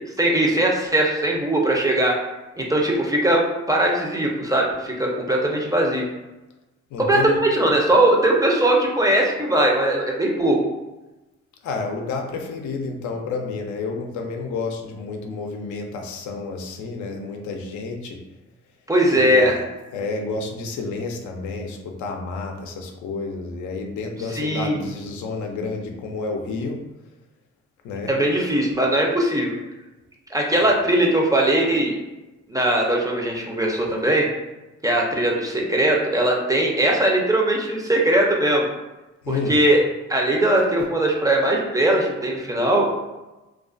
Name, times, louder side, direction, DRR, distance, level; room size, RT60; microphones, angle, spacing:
voice 1, 0.2-2.2 2.6-6.1 7.0-10.6 18.9-19.6 24.3-24.8 28.1-29.5 30.3-31.9 32.5-34.3 34.8-38.7 39.3-39.8 40.1-42.9, right 1 dB, 10° right, -1 dB, 0.4 m, -20 dB
voice 2, 6.9-7.4 11.6-18.2 19.1-19.5 19.9-26.8 27.8-28.1 39.2-39.6, left 4 dB, 75° left, 2 dB, 0.5 m, -30 dB
2.3 x 2.2 x 2.4 m, 1.1 s
cardioid pair, 90°, 30 cm